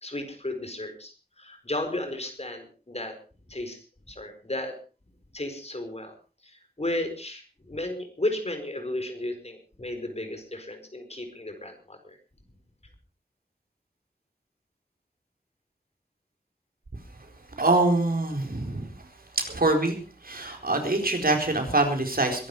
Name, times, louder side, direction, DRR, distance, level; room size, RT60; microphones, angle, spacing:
voice 1, 0.0-3.2 3.5-4.8 5.3-6.1 6.4-12.2, left 1 dB, 40° left, 7 dB, 4.6 m, -34 dB
voice 2, 17.6-18.9 19.3-20.0 20.2-22.5, right 2 dB, 70° right, 4 dB, 4.3 m, -24 dB
22.0 x 11.5 x 4.9 m, 0.37 s
wide cardioid pair, 55°, 16 cm